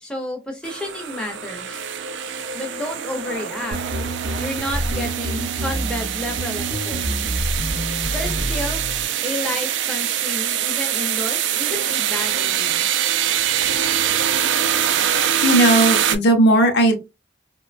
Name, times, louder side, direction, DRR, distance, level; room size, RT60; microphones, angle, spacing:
voice 1, 0.0-1.9 2.5-3.8 4.4-7.3 8.1-8.8 9.2-12.9, left 1 dB, 5° left, 0.5 m, -31 dB
sound 1, 0.6-16.2, right 10 dB, 75° right, 0.3 m, -24 dB
sound 2, 3.7-9.0, right 1 dB, 45° right, 0.7 m, -27 dB
voice 2, 15.4-17.0, right 1 dB, 60° left, 0.6 m, -16 dB
2.8 x 2.2 x 2.3 m
head